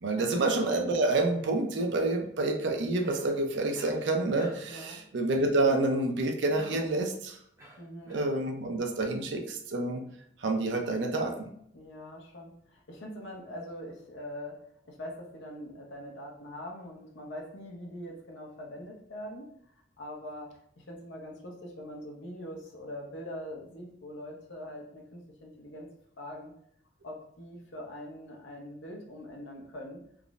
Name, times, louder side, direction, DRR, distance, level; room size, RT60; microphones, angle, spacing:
voice 1, 0.0-7.4 8.1-10.0 10.4-11.5, right 2 dB, 75° right, 4 dB, 0.5 m, -28 dB
Cough, 3.0-3.4 3.7-4.0 4.4-4.8 6.5-7.0 7.6-8.3, right 1 dB, 15° right, 0.7 m, -48 dB
voice 2, 4.7-5.0 7.8-8.2 11.7-19.5 20.0-25.9 26.2-26.5 27.0-30.0, left 1 dB, 80° left, 1 dB, 0.7 m, -43 dB
3.5 x 2.0 x 2.4 m, 0.70 s
head